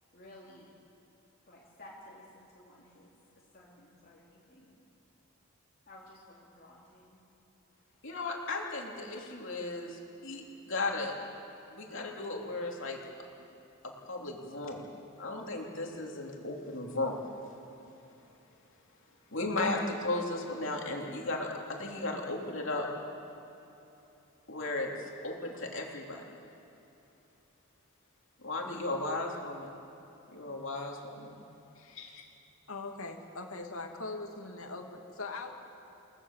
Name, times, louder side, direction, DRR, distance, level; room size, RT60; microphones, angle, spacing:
voice 1, 0.1-0.7 1.5-3.1 3.5-4.7 5.9-7.2, left 1 dB, 40° left, -5 dB, 3.2 m, -54 dB
voice 2, 8.0-11.1 11.7-13.0 13.8-14.9 15.2-17.2 19.3-22.9 24.5-26.4 28.4-29.8 30.3-31.4 32.0-32.1, left 2 dB, 60° left, -1 dB, 3.4 m, -35 dB
voice 3, 31.7-32.3 32.7-35.5, left 3 dB, 75° left, 3 dB, 2.6 m, -41 dB
29.5 x 18.5 x 7.5 m, 3.0 s
head